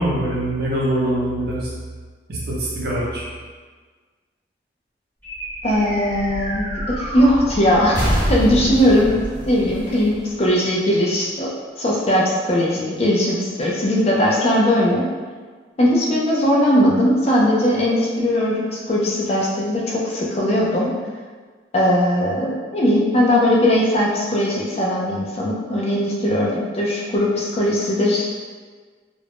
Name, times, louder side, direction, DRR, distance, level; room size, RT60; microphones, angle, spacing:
voice 1, 0.0-1.7 2.3-3.3, right 1 dB, 55° right, -5 dB, 0.7 m, -23 dB
sound 1, 5.2-10.9, equal, 10° left, 0.7 m, -27 dB
voice 2, 5.6-8.0 8.3-9.2 9.5-11.5 11.8-15.1 15.8-20.9 21.7-28.3, left 1 dB, 35° left, -4 dB, 0.4 m, -19 dB
2.4 x 2.1 x 3.3 m, 1.5 s
head